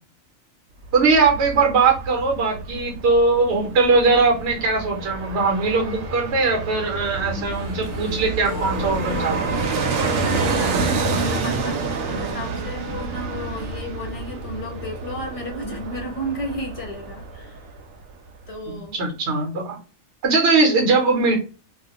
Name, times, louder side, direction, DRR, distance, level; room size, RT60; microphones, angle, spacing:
Fixed-wing aircraft airplane, 0.8-17.8 18.1-18.2, right 4 dB, 80° right, 1.0 m, -28 dB
voice 1, 0.9-9.6 18.7-19.8 20.2-21.4, right 3 dB, 60° right, 1 dB, 0.9 m, -20 dB
sound 1, 7.3-13.3, left 3 dB, 65° left, 0.8 m, -36 dB
voice 2, 10.0-17.6 18.5-19.0, equal, 45° left, 1 dB, 0.4 m, -33 dB
2.4 x 2.2 x 2.7 m, 0.34 s
omnidirectional pair, 1.4 m